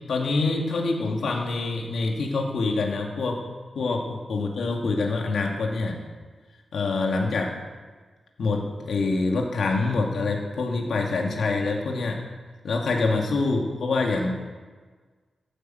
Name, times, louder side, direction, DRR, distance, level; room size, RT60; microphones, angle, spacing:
voice 1, 0.1-3.4 3.7-6.0 6.7-7.5 8.4-12.2 12.6-14.3, left 3 dB, 70° left, 0 dB, 2.6 m, -25 dB
15.0 x 10.0 x 8.0 m, 1.4 s
wide cardioid pair, 150°, 0 cm